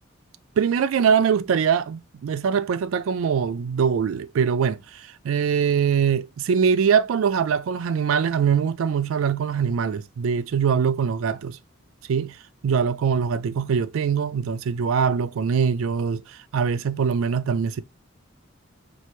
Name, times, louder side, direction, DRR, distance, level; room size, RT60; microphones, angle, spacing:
voice 1, 0.6-11.6 12.1-12.4 12.6-16.2 16.5-17.8, right 7 dB, 85° right, 0.4 m, -23 dB
4.4 x 2.5 x 3.0 m
head